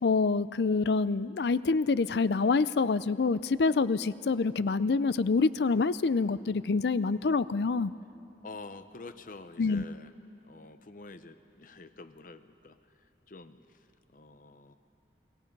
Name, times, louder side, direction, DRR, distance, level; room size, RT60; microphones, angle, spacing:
voice 1, 0.0-7.9 9.6-9.8, left 4 dB, 70° left, 17 dB, 0.5 m, -26 dB
voice 2, 8.4-10.1 10.4-12.8 13.3-13.8 14.1-14.7, left 3 dB, 50° left, 11 dB, 0.8 m, -47 dB
29.5 x 21.0 x 5.4 m, 2.7 s
head